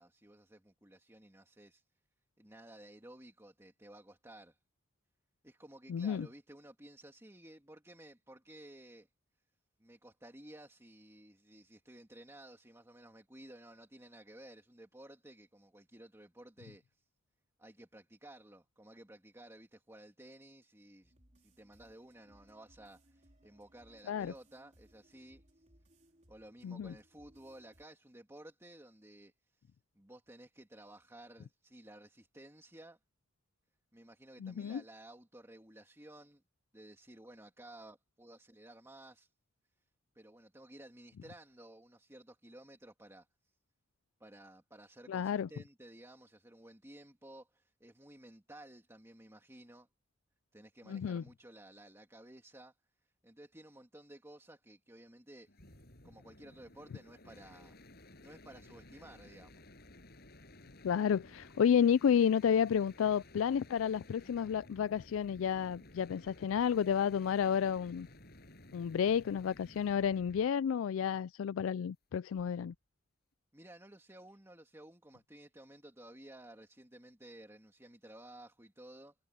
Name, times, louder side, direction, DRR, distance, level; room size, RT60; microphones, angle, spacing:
voice 1, 0.0-1.8 2.4-4.6 5.4-9.1 9.8-17.0 17.6-25.7 26.3-29.3 29.6-33.0 33.9-36.4 36.7-39.3 40.1-43.3 44.2-49.9 50.5-52.7 53.2-55.5 56.0-57.8 58.0-59.6 73.5-79.1, right 1 dB, 15° right, 2.7 m, -55 dB
voice 2, 5.9-6.3 24.1-24.3 26.6-26.9 34.4-34.8 45.1-45.5 50.9-51.2 60.8-68.1 68.7-72.7, left 8 dB, 90° left, 0.3 m, -31 dB
sound 1, 21.0-27.8, right 1 dB, 35° right, 4.1 m, -66 dB
sound 2, 55.5-70.5 72.3-72.8, left 1 dB, 55° left, 6.5 m, -56 dB
head